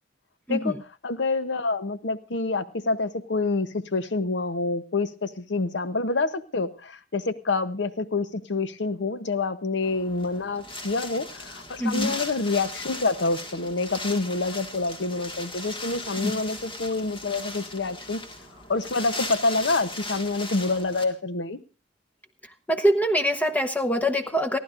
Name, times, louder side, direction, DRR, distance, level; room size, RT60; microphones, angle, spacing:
voice 1, 0.5-18.2 18.7-21.6, left 3 dB, 70° left, 12 dB, 0.8 m, -27 dB
Wind, 9.8-21.0, left 2 dB, 30° left, 1.8 m, -38 dB
voice 2, 11.8-12.1 16.2-16.3 22.7-24.6, equal, 10° left, 6 dB, 1.0 m, -23 dB
29.5 x 11.0 x 2.5 m, 0.34 s
head